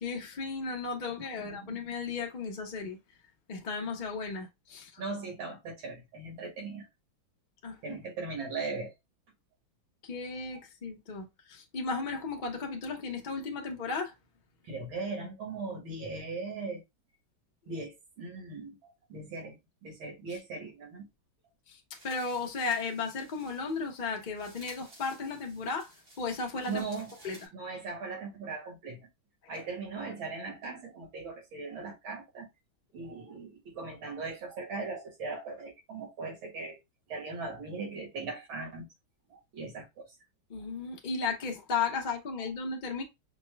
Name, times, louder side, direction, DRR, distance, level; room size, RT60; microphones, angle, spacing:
voice 1, 0.0-3.0 3.5-5.0 7.6-8.0 10.0-14.1 22.0-25.9 26.2-26.8 27.2-27.4 40.5-43.0, left 4 dB, 55° left, 0.5 m, -35 dB
voice 2, 1.4-1.8 5.0-6.9 7.8-8.9 14.6-16.8 17.7-19.6 19.8-21.1 26.7-27.2 27.5-29.0 29.5-32.5 32.9-36.8 37.1-38.9 39.3-40.1, right 3 dB, 85° right, 2.6 m, -39 dB
sound 1, 21.9-27.5, right 1 dB, 65° right, 3.3 m, -54 dB
5.9 x 2.2 x 3.2 m
omnidirectional pair, 2.2 m